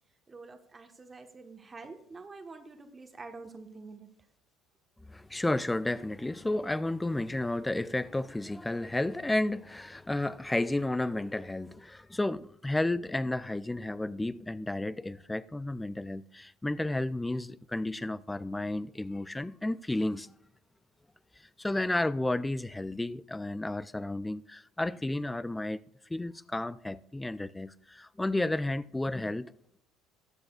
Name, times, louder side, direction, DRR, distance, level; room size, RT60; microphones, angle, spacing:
voice 1, 0.3-4.1, right 3 dB, 25° right, 1.2 m, -47 dB
voice 2, 5.1-20.3 21.6-25.8 26.1-29.5, left 2 dB, 10° left, 0.4 m, -32 dB
19.5 x 7.6 x 2.4 m
figure-of-eight pair, 60°, 0 cm